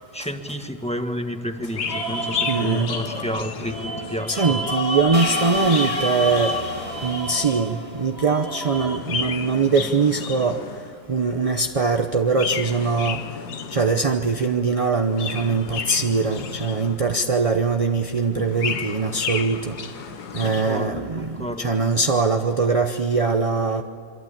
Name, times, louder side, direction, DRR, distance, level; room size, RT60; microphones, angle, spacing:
voice 1, 0.1-4.7 20.4-21.7, equal, 5° left, 5 dB, 1.4 m, -31 dB
Chirp tweet, 1.7-4.2 4.8-7.3 8.8-11.0 12.3-14.2 14.9-17.2 18.3-20.8, left 7 dB, 75° left, 1.7 m, -32 dB
sound 1, 1.9-9.0, left 1 dB, 40° left, 2.5 m, -29 dB
voice 2, 2.5-2.9 4.3-6.5 7.0-10.6 11.1-13.2 13.7-19.7 20.3-23.8, right 4 dB, 35° right, 5 dB, 0.5 m, -22 dB
sound 2, 5.1-8.0, right 5 dB, 55° right, 1.9 m, -36 dB
27.0 x 23.5 x 8.7 m, 2.3 s
omnidirectional pair, 1.7 m